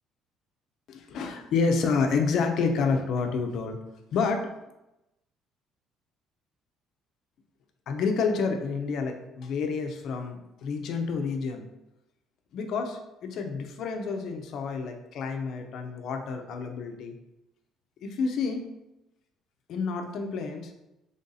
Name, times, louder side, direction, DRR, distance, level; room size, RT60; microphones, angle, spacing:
voice 1, 0.9-3.8 4.1-4.5 7.9-11.6 12.5-17.2 18.0-18.6 19.7-20.7, left 5 dB, 55° left, 5 dB, 0.5 m, -29 dB
3.4 x 2.6 x 3.9 m, 0.92 s
cardioid pair, 160°, 0 cm